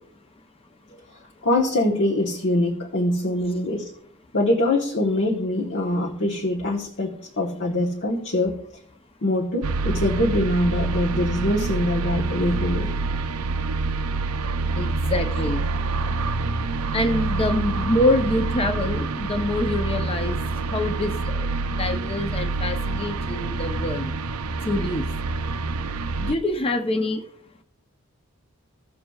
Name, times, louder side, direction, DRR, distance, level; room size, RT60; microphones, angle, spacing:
voice 1, 1.4-3.9 4.3-8.6 9.2-12.9, left 1 dB, 55° left, -1 dB, 1.1 m, -23 dB
sound 1, 9.6-26.3, right 3 dB, 80° right, 0.5 m, -27 dB
voice 2, 14.8-15.6 16.9-20.4 20.7-21.5 21.8-24.1 24.7-25.1 26.2-27.2, left 1 dB, 25° left, 5 dB, 0.6 m, -25 dB
16.5 x 6.8 x 2.3 m, 0.67 s
head